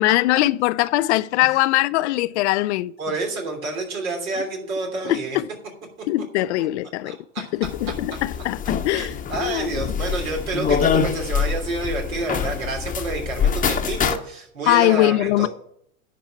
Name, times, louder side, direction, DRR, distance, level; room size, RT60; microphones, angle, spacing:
voice 1, 0.0-2.9 5.0-5.4 6.1-9.1 9.4-9.9 14.7-15.5, left 17 dB, 55° left, 0.5 m, -21 dB
voice 2, 3.0-5.4 6.0-6.1 7.0-7.4 8.9-15.5, right 3 dB, 75° right, 3.2 m, -29 dB
sound 1, 7.6-14.2, left 7 dB, 20° left, 0.9 m, -25 dB
10.5 x 4.7 x 7.6 m
hypercardioid pair, 90°, 41 cm